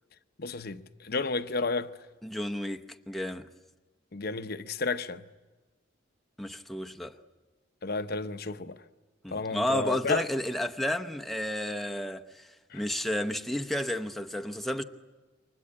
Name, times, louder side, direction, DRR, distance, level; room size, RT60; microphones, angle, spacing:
voice 1, 0.4-1.9 4.1-5.3 7.8-8.8 9.3-10.3 12.7-12.8, left 3 dB, 55° left, 0.8 m, -32 dB
voice 2, 2.2-3.5 6.4-7.2 9.2-14.8, left 1 dB, ahead, 0.8 m, -32 dB
28.5 x 24.0 x 8.7 m
head